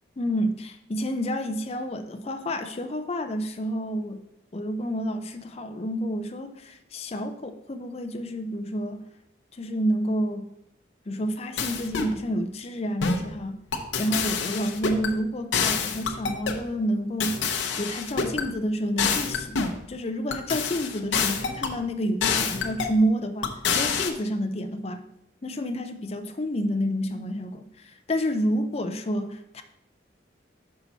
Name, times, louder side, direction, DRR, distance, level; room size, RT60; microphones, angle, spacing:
voice 1, 0.2-4.2 4.5-9.0 9.5-10.4 11.1-13.6 14.0-17.5 17.8-19.6 19.9-25.0 25.4-29.6, equal, 35° left, 7 dB, 0.5 m, -29 dB
sound 1, 11.6-12.1 13.0-13.3 13.7-15.1 15.5-16.6 17.2-18.5 19.0-19.8 20.3-21.8 22.2-23.0 23.4-24.1, left 5 dB, 75° left, 0.7 m, -27 dB
5.8 x 5.6 x 4.0 m, 0.78 s
head